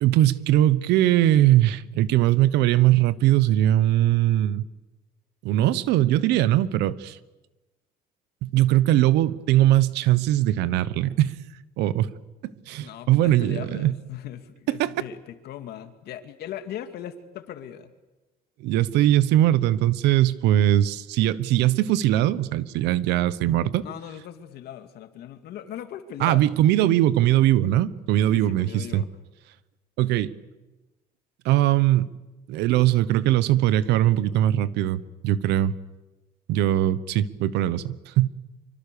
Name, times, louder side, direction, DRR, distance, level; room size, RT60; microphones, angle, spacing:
voice 1, 0.0-4.6 5.4-7.2 8.4-11.4 11.8-12.1 12.4-13.9 14.7-14.9 18.6-23.8 26.2-29.0 30.0-30.3 31.4-32.1 32.5-35.8 36.5-38.3, right 13 dB, 90° right, 17 dB, 1.0 m, -21 dB
voice 2, 12.8-17.9 23.8-26.5 28.3-29.1, left 10 dB, 70° left, 8 dB, 2.2 m, -39 dB
25.5 x 24.5 x 6.9 m, 1.1 s
cardioid pair, 110°, 17 cm